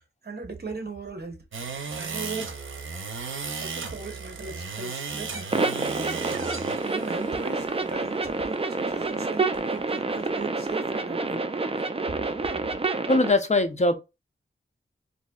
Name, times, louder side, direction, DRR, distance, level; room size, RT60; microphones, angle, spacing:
voice 1, 0.2-1.4 2.0-2.5 3.6-6.2 6.8-11.5, right 3 dB, 55° right, 0.9 m, -38 dB
sound 1, 1.5-10.7, right 5 dB, 90° right, 0.6 m, -37 dB
sound 2, 5.5-13.3, right 3 dB, 30° right, 0.4 m, -28 dB
voice 2, 13.1-13.9, left 2 dB, 35° left, 0.5 m, -21 dB
4.0 x 2.6 x 2.3 m
wide cardioid pair, 90°, 20 cm